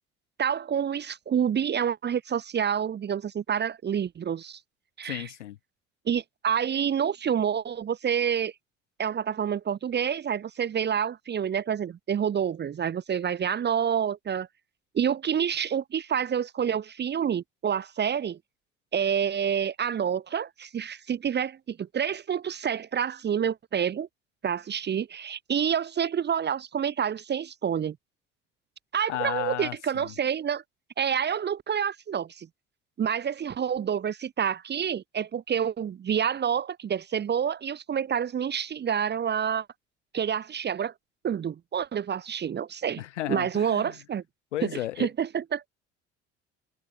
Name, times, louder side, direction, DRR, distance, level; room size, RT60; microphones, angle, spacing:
voice 1, 0.4-4.6 5.0-5.2 6.1-8.5 9.0-14.5 14.9-18.4 18.9-24.1 24.4-28.0 28.9-30.6 31.0-32.5 33.0-39.7 40.1-40.9 41.2-43.0 43.3-44.2 44.6-44.7 45.0-45.7, right 8 dB, 30° right, 1.1 m, -28 dB
voice 2, 5.0-5.6 29.1-30.1 43.0-44.0 44.5-45.1, left 14 dB, 70° left, 5.7 m, -34 dB
figure-of-eight pair, 60°, 36 cm